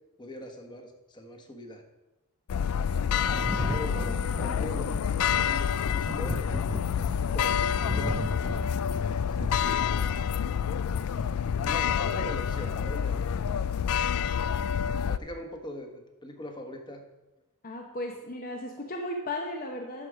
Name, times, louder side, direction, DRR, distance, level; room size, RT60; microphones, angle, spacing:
voice 1, 0.2-1.8 3.6-6.4 6.8-8.2 8.7-10.3 11.6-13.6 15.1-17.0, left 1 dB, 20° left, 3 dB, 1.2 m, -42 dB
sound 1, 2.5-15.2, left 7 dB, 75° left, 0.4 m, -28 dB
Thunder, 3.2-10.6 11.7-11.8, right 1 dB, 5° right, 0.4 m, -37 dB
voice 2, 17.6-20.1, left 1 dB, 40° left, 2 dB, 0.8 m, -35 dB
12.0 x 4.8 x 6.2 m, 1.0 s
head